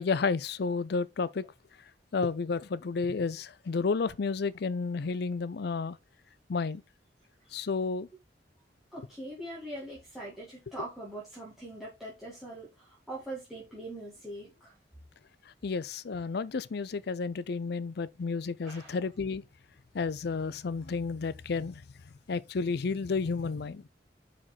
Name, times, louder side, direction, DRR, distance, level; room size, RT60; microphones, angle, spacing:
voice 1, 0.0-1.5 2.1-6.0 6.5-6.8 7.5-8.1 15.6-19.4 19.9-21.8 22.3-23.8, left 4 dB, 60° left, 0.5 m, -31 dB
voice 2, 8.9-14.7 18.6-19.0, right 1 dB, ahead, 2.2 m, -42 dB
5.6 x 5.1 x 4.5 m
head